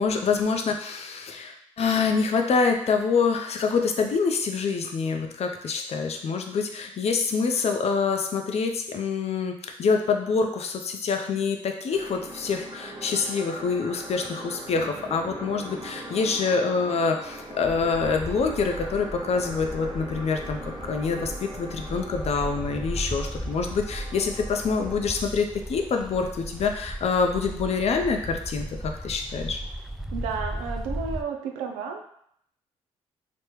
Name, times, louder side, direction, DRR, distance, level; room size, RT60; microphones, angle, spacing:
voice 1, 0.0-29.6, left 5 dB, 55° left, 4 dB, 0.5 m, -26 dB
sound 1, 11.9-25.2, right 1 dB, 35° right, 0.7 m, -41 dB
sound 2, 17.6-31.2, right 1 dB, ahead, 0.3 m, -36 dB
voice 2, 30.1-32.0, right 5 dB, 85° right, 4 dB, 0.4 m, -32 dB
3.3 x 2.1 x 3.0 m, 0.69 s
supercardioid pair, 50°, 13 cm